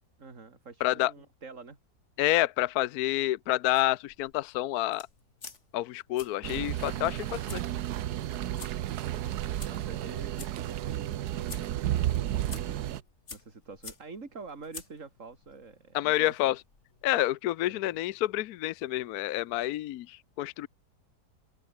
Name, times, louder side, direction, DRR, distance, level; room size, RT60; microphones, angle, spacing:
voice 1, 0.2-1.8 8.9-13.0 13.3-16.5 17.7-18.0, right 4 dB, 50° right, 3.3 m, -47 dB
voice 2, 0.8-1.1 2.2-5.1 5.7-7.6 15.9-16.6 17.0-20.7, left 15 dB, 75° left, 1.1 m, -28 dB
sound 1, 3.7-17.3, left 4 dB, 45° left, 2.5 m, -51 dB
sound 2, 6.4-13.0, right 12 dB, 75° right, 1.3 m, -32 dB
open air
omnidirectional pair, 1.7 m